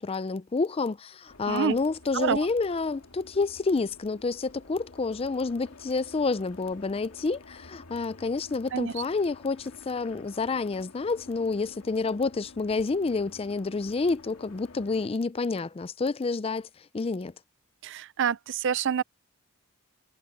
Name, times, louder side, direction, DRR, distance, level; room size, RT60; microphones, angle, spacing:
voice 1, 0.0-16.7 16.9-17.3, left 3 dB, 25° left, 0.4 m, -29 dB
sound 1, 1.3-15.1, left 3 dB, 80° left, 2.0 m, -51 dB
voice 2, 2.1-2.5 8.7-8.9 17.8-19.0, right 7 dB, 55° right, 0.5 m, -27 dB
head